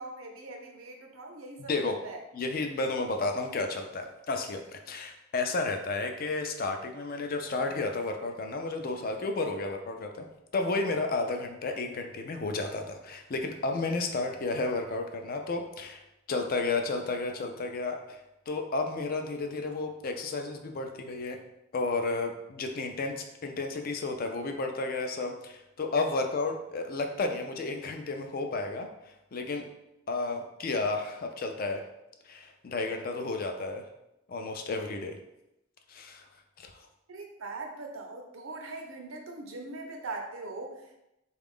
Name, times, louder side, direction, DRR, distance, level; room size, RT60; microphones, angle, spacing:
voice 1, 0.0-2.2 37.1-41.0, right 2 dB, 85° right, 3 dB, 0.7 m, -41 dB
voice 2, 1.6-2.0 2.3-10.3 10.5-16.0 16.3-18.2 18.5-21.4 21.7-28.9 29.3-29.7 30.1-31.9 32.2-33.8 34.3-35.2 35.9-36.3 36.6-36.9, left 3 dB, 45° left, 5 dB, 0.4 m, -32 dB
3.9 x 2.4 x 3.6 m, 0.89 s
head